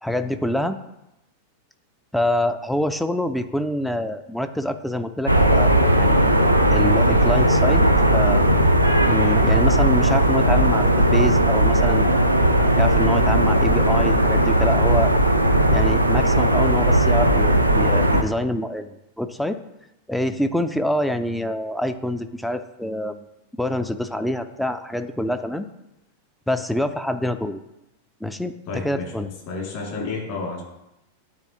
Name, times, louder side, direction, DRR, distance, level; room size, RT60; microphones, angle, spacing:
voice 1, 0.0-0.8 2.1-6.2 6.7-7.9 8.1-8.4 9.1-12.3 12.8-15.1 15.7-19.6 20.1-23.3 23.6-25.7 26.5-27.6 28.2-29.3, left 1 dB, ahead, 9 dB, 0.3 m, -26 dB
sound 1, 5.3-18.2, right 1 dB, 90° right, 0.4 m, -17 dB
voice 2, 28.7-30.6, left 4 dB, 50° left, -1 dB, 2.1 m, -31 dB
9.5 x 3.6 x 2.8 m, 0.90 s
figure-of-eight pair, 90°, 0 cm